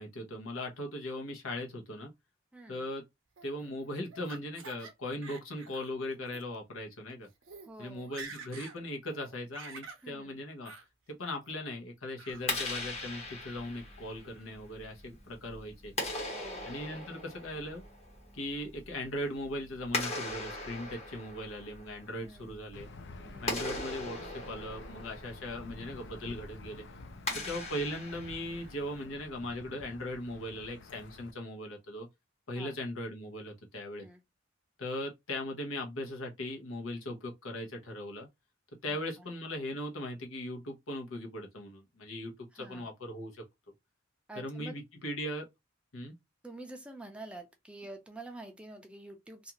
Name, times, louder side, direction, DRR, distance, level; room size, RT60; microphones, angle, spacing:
voice 1, 0.0-2.1 2.7-3.0 3.4-7.3 7.8-10.7 11.1-15.9 16.7-17.8 18.3-22.9 23.4-26.8 27.3-32.1 32.5-34.1 34.8-38.3 38.8-43.4 44.4-45.5 45.9-46.1, left 1 dB, 85° left, 0.9 m, -39 dB
voice 2, 2.5-2.9 7.6-8.1 10.0-10.4 16.3-16.7 22.2-22.6 23.2-23.6 27.3-27.6 32.5-32.8 34.0-34.2 38.9-39.3 42.5-42.9 44.3-44.8 46.4-49.5, right 2 dB, 5° right, 0.4 m, -48 dB
Laughter, 3.4-4.9 5.2-5.9 6.3-6.4 7.1-7.2 7.4-7.7 8.0-8.8 9.1-10.0 10.6-10.9 11.3-11.7 12.2-12.7, right 4 dB, 70° right, 0.6 m, -48 dB
Clapping, 12.3-29.1, left 2 dB, 35° left, 1.0 m, -40 dB
Aircraft / Engine, 22.7-31.3, left 2 dB, 60° left, 0.5 m, -49 dB
2.5 x 2.3 x 2.8 m
head